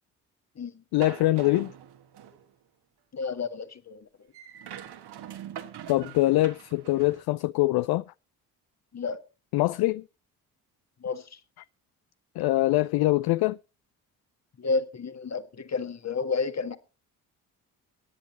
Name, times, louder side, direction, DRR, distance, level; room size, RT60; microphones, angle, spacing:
voice 1, 0.9-1.7 5.9-8.0 9.5-10.0 12.4-13.6, left 18 dB, 55° left, 0.5 m, -23 dB
sound 1, 1.0-2.5 4.3-7.2, right 9 dB, 60° right, 1.7 m, -43 dB
voice 2, 3.1-4.1 8.9-9.2 11.0-11.4 14.6-16.8, left 4 dB, 35° left, 1.7 m, -31 dB
23.5 x 10.5 x 2.9 m
hypercardioid pair, 45°, 44 cm